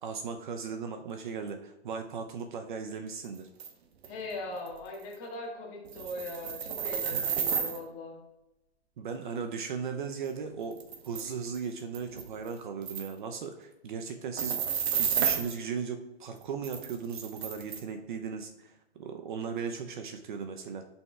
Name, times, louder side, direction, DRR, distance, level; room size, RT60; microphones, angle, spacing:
voice 1, 0.0-3.5 7.1-7.4 9.0-20.9, right 6 dB, 45° right, 6 dB, 0.6 m, -37 dB
sound 1, 3.6-3.7 4.0-4.1 4.7-4.8 4.9-5.1 5.8-7.8 10.2-10.3 10.7-11.2 11.5-11.6 11.9-12.5 12.9-13.1 14.4-15.5 16.6-17.8, right 7 dB, 65° right, 1.0 m, -31 dB
voice 2, 4.1-8.2, left 2 dB, 30° left, -1 dB, 1.6 m, -40 dB
9.4 x 5.5 x 2.3 m, 0.92 s
hypercardioid pair, 145°, 34 cm